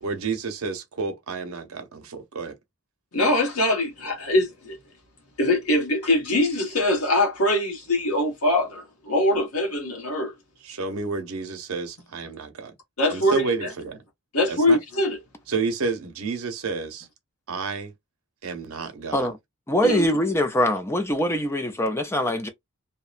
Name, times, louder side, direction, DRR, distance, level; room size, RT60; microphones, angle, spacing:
voice 1, 0.0-2.5 10.6-12.7 13.1-14.0 14.5-14.8 15.5-17.1 17.5-17.9 18.4-19.3, right 4 dB, 75° right, 0.7 m, -30 dB
voice 2, 3.1-4.8 5.4-10.3 13.0-13.7 14.3-15.2 19.8-20.1, left 1 dB, 85° left, 1.2 m, -23 dB
voice 3, 19.7-22.5, left 1 dB, 10° left, 0.4 m, -23 dB
2.7 x 2.2 x 2.4 m
head